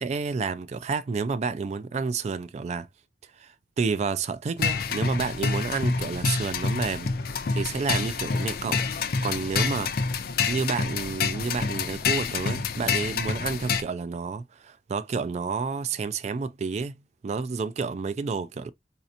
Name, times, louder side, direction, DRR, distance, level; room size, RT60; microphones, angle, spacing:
voice 1, 0.0-2.9 3.4-7.1 7.5-8.8 9.2-18.7, right 4 dB, 40° right, 0.3 m, -30 dB
sound 1, 4.6-13.8, left 5 dB, 55° left, 0.5 m, -27 dB
4.1 x 2.8 x 2.4 m
head